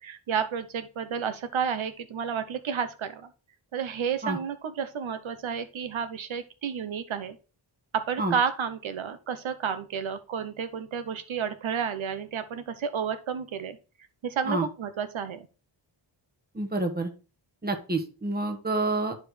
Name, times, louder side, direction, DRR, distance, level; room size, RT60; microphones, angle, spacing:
voice 1, 0.0-3.3 3.7-7.4 7.9-13.8 14.2-15.5, right 7 dB, 85° right, 11 dB, 0.8 m, -31 dB
voice 2, 16.5-17.1 17.6-19.2, right 2 dB, 20° right, 6 dB, 1.2 m, -28 dB
11.5 x 4.9 x 3.2 m, 0.33 s
wide cardioid pair, 120°, 47 cm